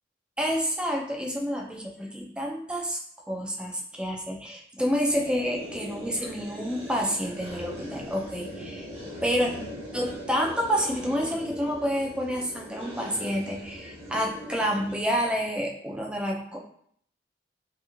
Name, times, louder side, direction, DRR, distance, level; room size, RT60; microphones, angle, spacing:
voice 1, 0.4-3.0 3.3-8.9 9.2-9.5 9.9-16.6, equal, 5° right, 0 dB, 0.3 m, -29 dB
sound 1, 5.0-15.5, equal, 35° right, 0.8 m, -40 dB
2.9 x 2.5 x 2.3 m, 0.65 s
head